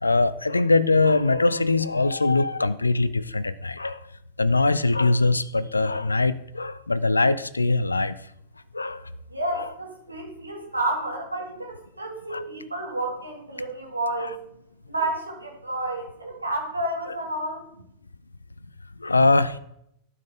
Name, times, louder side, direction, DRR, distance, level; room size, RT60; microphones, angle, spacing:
voice 1, 0.0-4.0 4.4-8.2 8.7-9.0 9.6-9.7 12.3-12.4 14.2-14.3 19.0-19.6, left 3 dB, 85° left, 15 dB, 0.3 m, -22 dB
voice 2, 9.3-14.4 14.9-17.6, right 1 dB, 85° right, 0 dB, 1.6 m, -30 dB
12.0 x 4.5 x 3.6 m, 0.75 s
figure-of-eight pair, 90°, 0 cm